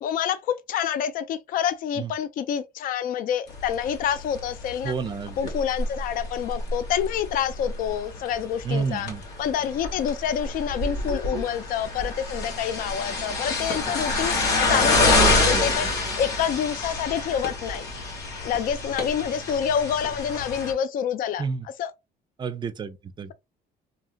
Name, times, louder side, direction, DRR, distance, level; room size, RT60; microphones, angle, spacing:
voice 1, 0.0-4.9 5.4-9.1 9.4-17.9 18.4-21.5 21.8-21.9, left 9 dB, 55° left, 0.4 m, -27 dB
sound 1, 3.5-20.7, left 2 dB, 80° left, 1.4 m, -27 dB
voice 2, 4.8-5.4 8.6-9.2 15.1-15.9 21.4-21.7 22.4-23.3, right 5 dB, 25° right, 0.4 m, -30 dB
2.8 x 2.7 x 2.4 m
cardioid pair, 110°, 17 cm